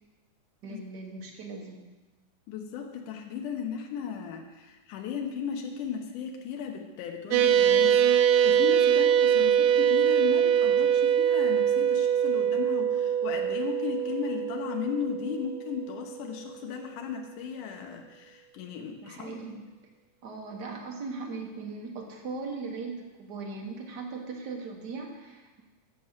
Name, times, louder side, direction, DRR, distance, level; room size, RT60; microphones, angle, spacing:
voice 1, 0.6-1.9 19.0-19.6 20.2-25.6, right 4 dB, 65° right, 1 dB, 1.0 m, -39 dB
voice 2, 2.5-19.4, left 7 dB, 85° left, 3 dB, 2.4 m, -36 dB
sound 1, 7.3-16.0, right 9 dB, 80° right, 1.6 m, -23 dB
8.4 x 6.3 x 7.3 m, 1.2 s
omnidirectional pair, 3.5 m